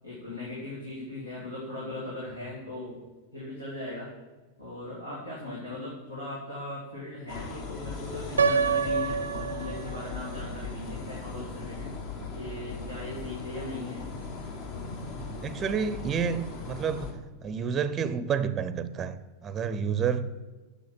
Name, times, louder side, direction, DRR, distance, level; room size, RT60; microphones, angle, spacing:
voice 1, 0.0-3.0 3.3-4.1 4.6-11.9 12.3-14.0, left 2 dB, 85° left, 2.4 m, -38 dB
sound 1, 7.3-17.1, left 4 dB, 50° left, 1.5 m, -38 dB
Piano, 8.4-10.3, right 6 dB, 70° right, 0.4 m, -27 dB
voice 2, 15.2-17.1 17.4-19.2 19.4-20.3, right 7 dB, 25° right, 0.6 m, -29 dB
7.7 x 6.7 x 7.5 m
figure-of-eight pair, 90°, 0 cm